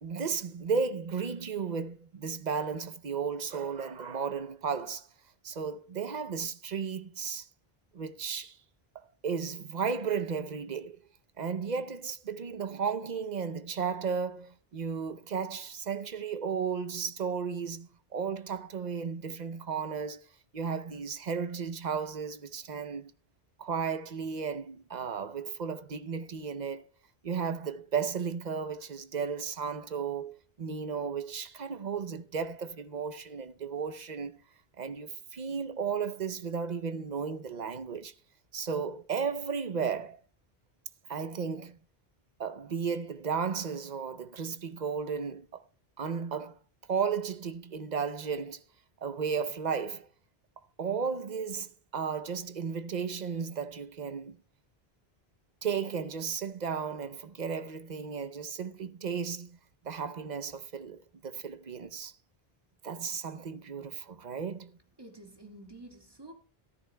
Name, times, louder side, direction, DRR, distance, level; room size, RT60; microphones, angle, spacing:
voice 1, 0.0-5.1 5.4-7.5 7.9-8.6 8.9-11.0 11.4-23.1 23.6-26.9 27.2-34.4 34.8-38.1 38.5-40.2 41.1-41.8 42.4-45.6 46.0-46.6 46.9-48.6 49.0-50.1 50.8-54.4 55.6-59.6 59.8-62.1 62.8-64.8, right 6 dB, 50° right, 0.8 m, -34 dB
voice 2, 65.0-66.3, right 1 dB, 25° right, 1.9 m, -49 dB
14.0 x 13.5 x 2.2 m
omnidirectional pair, 1.0 m